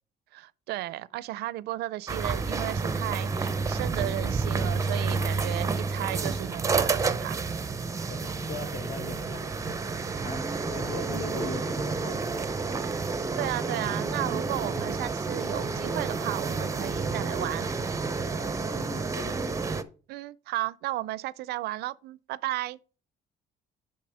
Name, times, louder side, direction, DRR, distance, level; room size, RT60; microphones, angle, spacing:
voice 1, 0.3-7.4 13.4-17.7 20.1-22.8, right 16 dB, 75° right, 0.4 m, -34 dB
sound 1, 2.1-19.8, right 4 dB, 20° right, 0.5 m, -30 dB
voice 2, 8.1-12.5 18.4-19.4, left 5 dB, 50° left, 0.9 m, -41 dB
8.5 x 5.5 x 3.4 m
cardioid pair, 110°, 17 cm